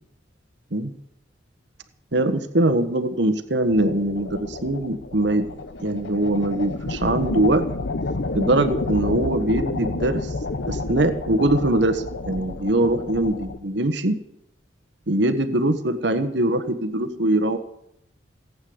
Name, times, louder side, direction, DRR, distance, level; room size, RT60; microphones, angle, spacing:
voice 1, 2.1-5.5 5.8-7.7 8.3-10.3 10.7-14.2 15.1-17.6, right 1 dB, 65° right, 7 dB, 1.4 m, -22 dB
sound 1, 3.7-13.6, left 2 dB, 65° left, 0.9 m, -30 dB
18.5 x 8.7 x 8.0 m, 0.77 s
head